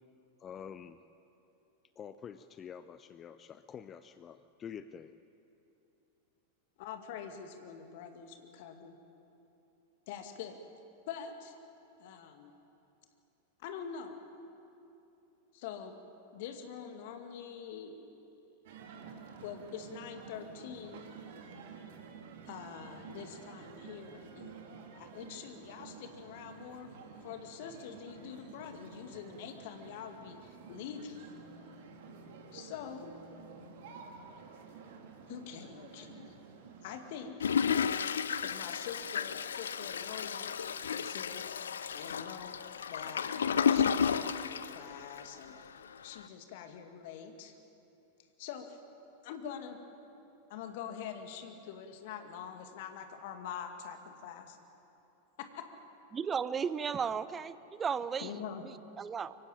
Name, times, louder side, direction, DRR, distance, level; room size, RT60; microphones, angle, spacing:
voice 1, 0.4-1.0 2.0-5.1, left 8 dB, 25° left, 13 dB, 0.6 m, -47 dB
voice 2, 6.8-9.0 10.1-10.6 11.1-11.6 12.0-12.5 13.6-14.2 15.5-15.9 16.3-18.5 19.0-21.0 22.5-24.5 24.9-26.9 27.2-31.3 32.5-33.1 35.3-36.3 36.8-37.5 38.4-40.5 40.9-41.4 41.9-42.5 42.9-43.4 43.7-45.6 46.0-47.6 48.4-48.8 49.2-49.8 50.5-54.6 55.4-55.7 58.2-58.6, left 8 dB, 50° left, 6 dB, 2.2 m, -45 dB
sound 1, 18.6-37.3, right 5 dB, 55° right, 2.4 m, -51 dB
Toilet flush, 37.4-45.4 45.9-46.0 46.2-46.3, left 7 dB, 65° left, 0.6 m, -32 dB
voice 3, 56.1-59.4, right 6 dB, 20° right, 15 dB, 0.8 m, -35 dB
24.0 x 15.5 x 9.0 m, 2.9 s
figure-of-eight pair, 90°, 0 cm